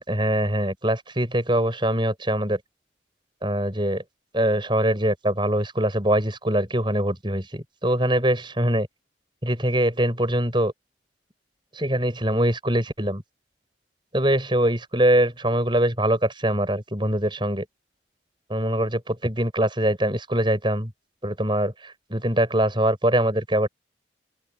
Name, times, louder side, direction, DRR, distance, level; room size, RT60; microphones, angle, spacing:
voice 1, 0.0-2.6 3.4-4.0 4.3-8.9 9.4-10.7 11.7-13.2 14.1-17.6 18.5-20.9 21.2-21.7 22.1-23.7, right 1 dB, 25° right, 7.9 m, -23 dB
open air
head